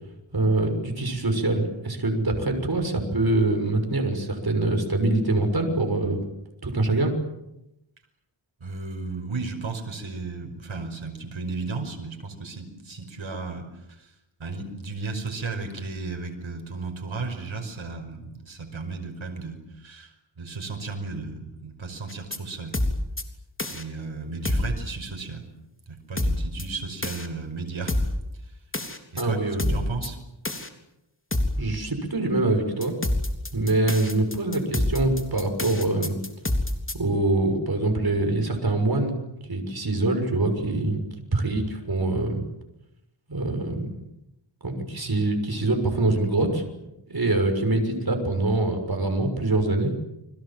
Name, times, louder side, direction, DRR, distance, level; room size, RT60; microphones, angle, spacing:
voice 1, 0.3-6.2 6.6-7.1 29.1-29.7 31.6-32.9 33.5-36.2 36.9-39.1 39.5-41.0 41.3-42.4 43.3-43.9 44.6-46.6 47.1-49.9, right 2 dB, 50° right, 5 dB, 6.4 m, -24 dB
voice 2, 8.6-22.8 23.7-25.5 25.9-28.0 28.3-28.6 29.1-29.4 29.7-30.2, right 3 dB, 75° right, 4 dB, 5.5 m, -34 dB
sound 1, 22.1-22.4 22.7-23.2 23.6-23.8 24.4-24.8 26.2-26.6 27.0-27.3 27.9-28.2 28.7-29.2 29.6-30.1 30.4-30.7 31.3-31.6 32.8-36.9, left 1 dB, 25° left, 3.4 m, -26 dB
30.0 x 23.5 x 7.7 m, 0.88 s
wide cardioid pair, 95°, 48 cm